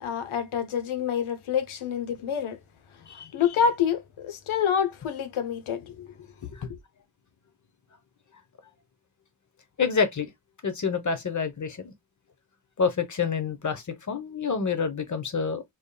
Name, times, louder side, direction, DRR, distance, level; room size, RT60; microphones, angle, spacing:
voice 1, 0.0-2.6 3.3-6.1, left 7 dB, 80° left, 0.9 m, -27 dB
voice 2, 9.8-10.3 10.6-11.9 12.8-15.6, left 5 dB, 35° left, 0.8 m, -28 dB
4.0 x 3.5 x 2.2 m
wide cardioid pair, 175°, 49 cm